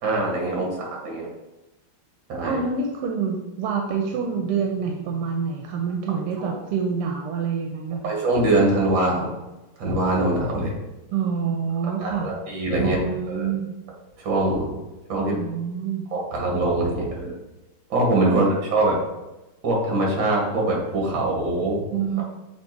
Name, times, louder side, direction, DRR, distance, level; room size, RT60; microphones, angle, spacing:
voice 1, 0.0-1.3 2.3-2.6 6.4-6.6 8.0-9.3 9.8-10.8 11.8-13.5 14.2-14.7 15.1-15.4 16.1-17.3 17.9-19.0 19.6-21.8, right 2 dB, 65° right, -1 dB, 2.2 m, -23 dB
voice 2, 2.4-8.1 11.1-12.3 12.8-13.7 15.2-16.0 18.3-18.4 21.9-22.2, right 6 dB, 85° right, 2 dB, 1.6 m, -27 dB
7.3 x 2.9 x 4.5 m, 1.0 s
omnidirectional pair, 2.3 m